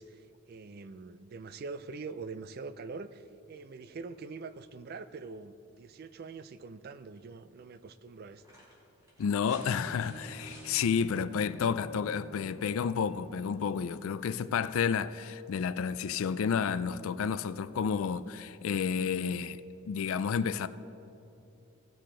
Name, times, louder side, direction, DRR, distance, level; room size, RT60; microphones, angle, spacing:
voice 1, 0.0-8.4, right 4 dB, 45° right, 0.3 m, -44 dB
sound 1, 7.2-7.3 8.3-10.8 12.3-12.4, equal, 15° right, 2.1 m, -54 dB
voice 2, 9.2-19.6 19.9-20.7, left 6 dB, 70° left, 0.3 m, -31 dB
Bowed string instrument, 9.5-13.6, equal, 5° left, 1.1 m, -49 dB
16.5 x 6.6 x 3.8 m
head